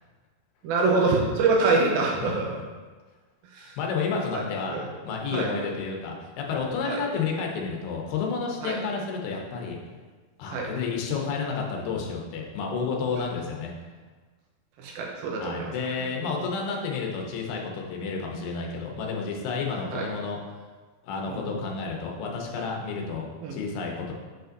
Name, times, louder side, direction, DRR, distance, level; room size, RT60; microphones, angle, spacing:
voice 1, 0.6-2.6 3.5-3.7 4.1-4.4 4.7-4.9 5.3-5.5 6.8-7.0 8.6-8.8 10.5-10.7 14.8-16.0 19.9-20.1 21.3-21.4 23.4-23.6, right 3 dB, 80° right, -1 dB, 2.3 m, -26 dB
voice 2, 3.8-4.7 5.1-9.8 10.4-13.7 15.4-20.4 21.0-23.3 23.5-24.1, left 5 dB, 75° left, 0 dB, 2.7 m, -30 dB
7.0 x 5.4 x 2.6 m, 1.4 s
omnidirectional pair, 4.8 m